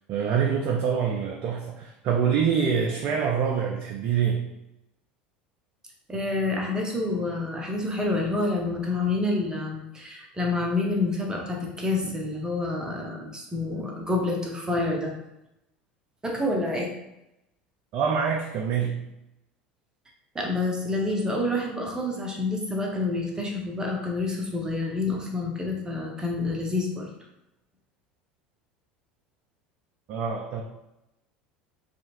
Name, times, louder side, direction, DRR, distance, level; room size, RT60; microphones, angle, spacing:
voice 1, 0.1-4.5 17.9-19.1 30.1-30.6, right 7 dB, 45° right, 1 dB, 0.4 m, -25 dB
voice 2, 6.1-15.1 16.2-16.9 20.3-27.1, left 2 dB, 15° right, 0 dB, 0.7 m, -28 dB
2.7 x 2.5 x 2.9 m, 0.89 s
figure-of-eight pair, 70°, 5 cm